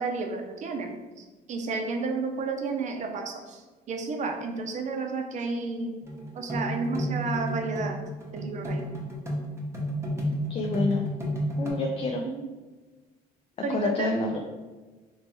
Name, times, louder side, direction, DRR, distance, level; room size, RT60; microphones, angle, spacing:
voice 1, 0.0-3.6 3.9-6.0 6.3-8.0 8.3-8.9 12.2-12.4 13.6-14.1, right 4 dB, 45° right, 4 dB, 0.6 m, -31 dB
sound 1, 6.0-11.7, equal, 15° right, 0.9 m, -31 dB
voice 2, 10.5-11.0 11.6-12.2 13.7-14.4, left 3 dB, 35° left, 1 dB, 0.4 m, -28 dB
3.2 x 3.0 x 3.0 m, 1.3 s
cardioid pair, 110°, 17 cm